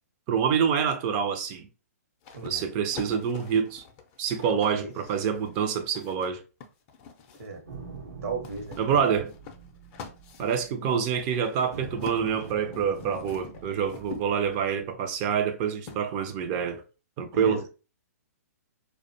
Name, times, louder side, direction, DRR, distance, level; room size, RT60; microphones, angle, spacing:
voice 1, 0.3-1.7 2.4-3.8 4.2-6.4 8.8-9.3 10.4-16.8 17.2-17.6, right 7 dB, 35° right, 0.4 m, -27 dB
sound 1, 2.2-7.6 8.4-14.8 15.9-16.0, left 5 dB, 35° left, 0.4 m, -45 dB
voice 2, 2.3-2.7 4.7-4.9 7.4-7.6 8.2-9.0 17.3-17.7, right 3 dB, 60° right, 0.8 m, -36 dB
sound 2, 7.6-11.2 11.7-15.1, right 4 dB, 90° right, 0.9 m, -45 dB
2.4 x 2.1 x 2.6 m
hypercardioid pair, 125°, 9 cm